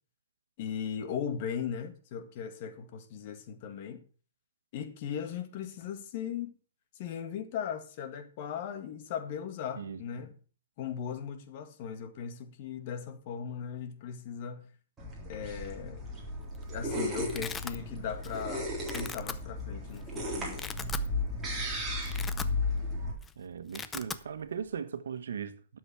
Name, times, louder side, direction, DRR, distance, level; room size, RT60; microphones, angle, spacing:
voice 1, 0.6-4.1 4.7-6.5 7.0-10.4 10.8-14.7 15.3-16.0 16.7-20.7, left 7 dB, 40° left, 1.9 m, -38 dB
sound 1, 15.0-23.1, left 1 dB, 10° right, 3.6 m, -35 dB
Domestic sounds home sounds, 16.3-16.6 16.9-17.8 18.2-18.5 18.8-19.3 20.0-20.1 20.4-21.1 21.5-21.6 21.9-22.9 23.1-23.3 23.6-24.2, left 6 dB, 10° left, 0.6 m, -39 dB
voice 2, 23.4-25.8, right 7 dB, 90° right, 1.4 m, -38 dB
12.0 x 7.1 x 6.1 m
hypercardioid pair, 160°, 0 cm